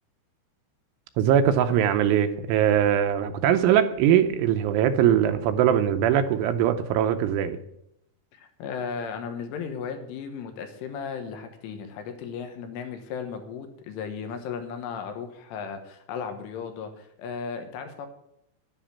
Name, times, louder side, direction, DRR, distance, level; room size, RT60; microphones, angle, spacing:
voice 1, 1.2-7.6, right 10 dB, 80° right, 8 dB, 3.0 m, -21 dB
voice 2, 8.3-18.1, left 6 dB, 75° left, 6 dB, 3.7 m, -35 dB
11.0 x 10.0 x 7.2 m, 0.77 s
omnidirectional pair, 5.9 m